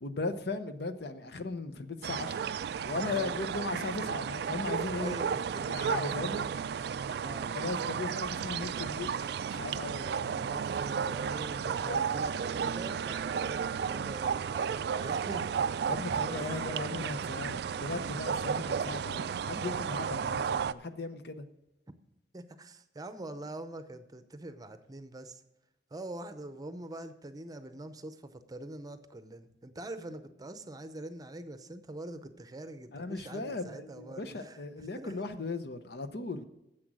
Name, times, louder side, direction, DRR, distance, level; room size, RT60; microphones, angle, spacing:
voice 1, 0.0-2.4 2.8-5.2 5.7-6.5 7.5-9.1 9.5-10.6 11.8-12.1 15.9-21.5 32.9-36.4, left 3 dB, 65° left, 0.8 m, -37 dB
sound 1, 2.0-20.7, right 7 dB, 65° right, 0.3 m, -33 dB
voice 2, 3.0-3.4 5.0-5.9 7.2-7.6 10.5-15.9 16.2-17.3 22.3-25.4 25.9-35.1, right 1 dB, 20° right, 0.7 m, -44 dB
10.5 x 7.7 x 6.1 m
head